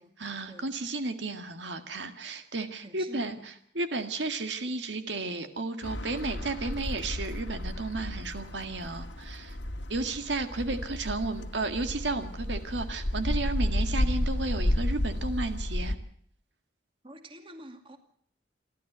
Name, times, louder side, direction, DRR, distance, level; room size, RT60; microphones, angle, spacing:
voice 1, 0.2-3.4 3.8-9.6 9.9-16.0, right 3 dB, 85° right, 8 dB, 1.9 m, -33 dB
voice 2, 2.8-3.4 17.0-18.0, right 1 dB, 30° right, 6 dB, 2.4 m, -47 dB
sound 1, 5.8-16.0, left 1 dB, 90° left, 1.8 m, -32 dB
28.0 x 12.5 x 8.0 m, 0.64 s
head